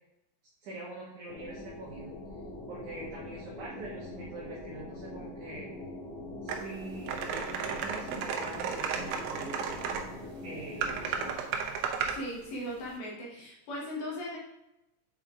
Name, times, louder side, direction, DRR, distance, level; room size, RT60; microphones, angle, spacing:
voice 1, 0.6-2.1 2.7-5.7 6.4-9.8 10.4-11.6, right 2 dB, 60° right, -7 dB, 2.2 m, -44 dB
sound 1, 1.3-11.3, left 1 dB, 85° left, 1.7 m, -43 dB
sound 2, 6.5-6.6 7.1-10.0 10.8-12.2, right 6 dB, 85° right, 2.1 m, -33 dB
voice 2, 12.1-14.4, equal, 60° left, -4 dB, 2.4 m, -38 dB
7.6 x 4.5 x 3.6 m, 0.89 s
omnidirectional pair, 5.0 m